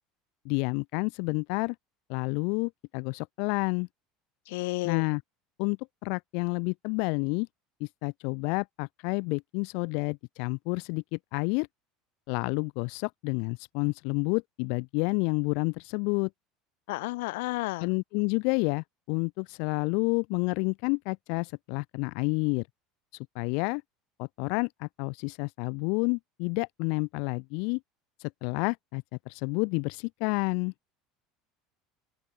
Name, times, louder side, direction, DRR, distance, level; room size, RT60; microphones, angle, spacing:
voice 1, 0.4-1.8 2.1-3.9 4.8-5.2 5.6-7.5 7.8-11.7 12.3-16.3 17.8-22.7 23.1-23.8 24.2-27.8 28.2-30.7, left 37 dB, 60° left, 0.5 m, -30 dB
voice 2, 4.5-5.0 16.9-17.9, left 22 dB, 85° left, 2.8 m, -32 dB
open air
cardioid pair, 170°, 0 cm